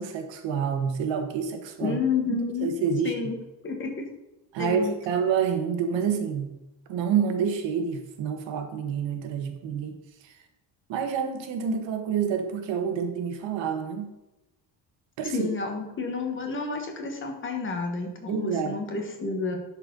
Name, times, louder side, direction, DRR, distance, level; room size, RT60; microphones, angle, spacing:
voice 1, 0.0-2.0 2.3-3.3 4.5-6.5 6.9-10.0 10.2-10.3 10.9-14.1 15.2-15.5 18.3-18.8, right 6 dB, 90° right, 6 dB, 1.4 m, -28 dB
voice 2, 1.8-2.7 3.0-3.3 3.6-4.1 4.6-4.9 15.2-19.6, left 4 dB, 25° left, 3 dB, 1.4 m, -30 dB
11.0 x 4.6 x 5.3 m, 0.99 s
cardioid pair, 175°, 43 cm